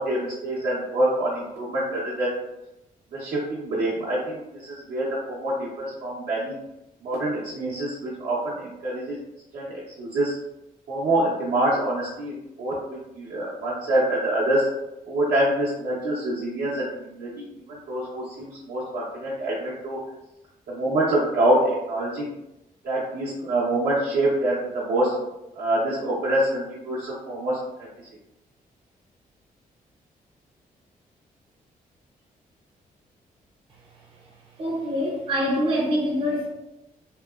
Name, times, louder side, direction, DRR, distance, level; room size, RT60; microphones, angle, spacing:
voice 1, 0.0-2.3 3.1-6.6 7.0-9.2 9.5-10.3 10.9-14.7 15.0-20.0 20.7-22.3 22.8-25.1 25.6-27.6, right 1 dB, 80° right, -8 dB, 0.7 m, -26 dB
voice 2, 34.6-36.5, equal, 35° right, -4 dB, 0.4 m, -25 dB
2.8 x 2.1 x 2.2 m, 0.91 s
wide cardioid pair, 140°, 15 cm